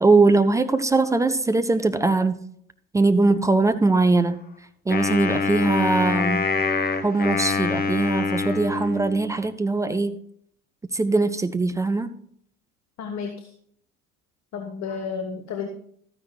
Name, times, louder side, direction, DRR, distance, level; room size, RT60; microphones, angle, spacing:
voice 1, 0.0-2.4 2.9-4.4 4.9-6.5 6.9-10.2 10.9-12.1, right 3 dB, 10° right, 9 dB, 0.4 m, -21 dB
Wind instrument woodwind instrument, 4.9-9.3, left 4 dB, 20° left, 1.2 m, -25 dB
voice 2, 13.0-13.5 14.5-15.7, left 6 dB, 40° left, 5 dB, 1.4 m, -31 dB
13.5 x 9.7 x 2.4 m, 0.64 s
figure-of-eight pair, 65°, 44 cm